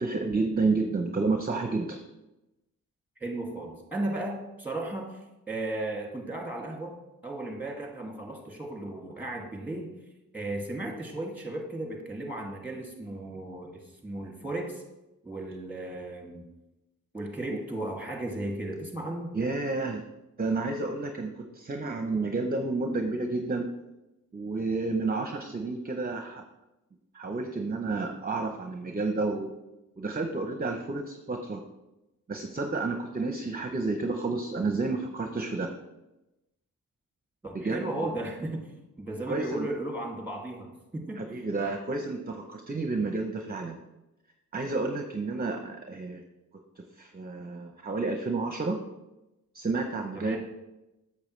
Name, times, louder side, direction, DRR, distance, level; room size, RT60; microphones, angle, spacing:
voice 1, 0.0-2.0 17.5-17.6 19.3-20.0 20.4-23.7 24.3-26.4 27.1-29.5 30.0-31.6 32.3-35.7 37.5-38.1 39.3-39.7 41.2-43.8 44.5-46.2 46.8-48.8 49.5-50.4, right 3 dB, 25° right, 5 dB, 0.7 m, -30 dB
voice 2, 3.2-5.2 5.5-7.0 7.2-9.9 10.3-13.7 14.0-14.8 15.2-16.4 17.1-19.3 37.4-38.7 39.0-41.3 50.1-50.4, right 2 dB, 5° right, 0 dB, 2.2 m, -35 dB
8.3 x 6.8 x 3.2 m, 0.97 s
cardioid pair, 55°, 34 cm